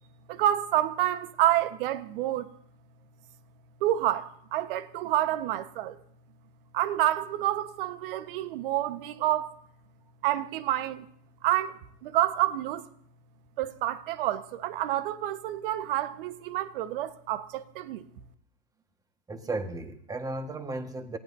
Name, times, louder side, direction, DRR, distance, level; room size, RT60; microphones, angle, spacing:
voice 1, 0.3-2.5 3.8-6.0 6.7-9.5 10.2-11.0 11.4-12.8 13.6-18.0, right 13 dB, 65° right, 1.4 m, -28 dB
voice 2, 19.3-21.2, right 2 dB, 10° right, 1.6 m, -34 dB
28.0 x 17.0 x 2.8 m
hypercardioid pair, 125°, 30 cm